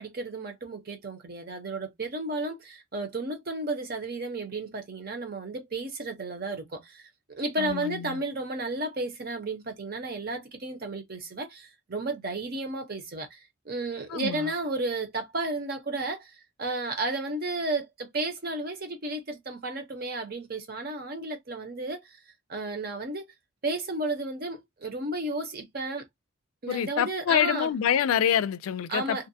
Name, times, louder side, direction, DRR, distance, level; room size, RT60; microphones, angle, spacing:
voice 1, 0.0-22.2 22.5-23.3 23.6-26.0 26.6-27.7 28.9-29.2, right 2 dB, 45° right, 0.7 m, -33 dB
voice 2, 7.6-8.2 14.1-14.5 26.7-29.3, left 9 dB, 85° left, 0.3 m, -26 dB
2.5 x 2.1 x 2.7 m
head